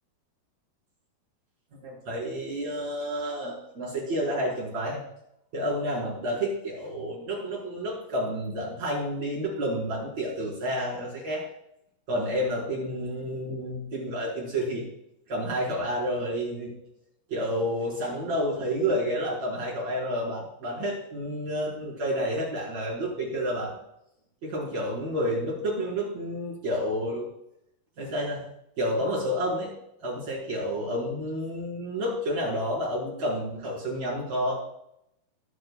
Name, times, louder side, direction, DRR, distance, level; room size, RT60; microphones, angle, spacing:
voice 1, 1.8-5.0 5.5-11.4 12.1-14.8 15.3-16.7 17.3-23.7 24.4-27.3 28.0-28.4 28.8-29.7 30.0-34.5, equal, 45° right, -5 dB, 6.3 m, -30 dB
22.5 x 7.9 x 2.4 m, 0.78 s
omnidirectional pair, 4.5 m